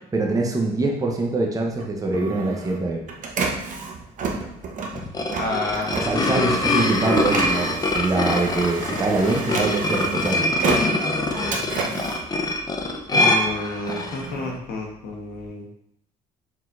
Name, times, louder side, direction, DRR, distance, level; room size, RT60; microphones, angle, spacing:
voice 1, 0.1-3.0 5.9-10.4, right 3 dB, 20° right, 0 dB, 0.8 m, -24 dB
Printer, 1.8-13.2 13.6-15.5, right 4 dB, 50° right, 0.8 m, -31 dB
sound 1, 4.9-14.3, left 2 dB, 25° left, 0.6 m, -24 dB
voice 2, 5.4-6.1 13.1-15.6, left 2 dB, 65° left, 0 dB, 1.1 m, -30 dB
4.3 x 4.0 x 2.5 m, 0.75 s
supercardioid pair, 80°, 16 cm